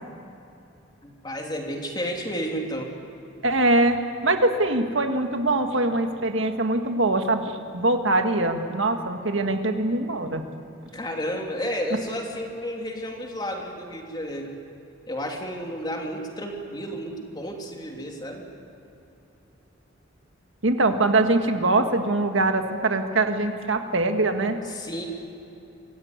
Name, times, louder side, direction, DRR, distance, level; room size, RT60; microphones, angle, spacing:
voice 1, 1.0-2.9 10.9-14.6 15.1-18.5 24.6-25.1, equal, 20° left, 1 dB, 3.0 m, -32 dB
voice 2, 3.4-4.0 4.2-10.4 20.6-24.6, right 2 dB, 70° right, 6 dB, 1.7 m, -23 dB
26.0 x 16.0 x 9.7 m, 2.8 s
head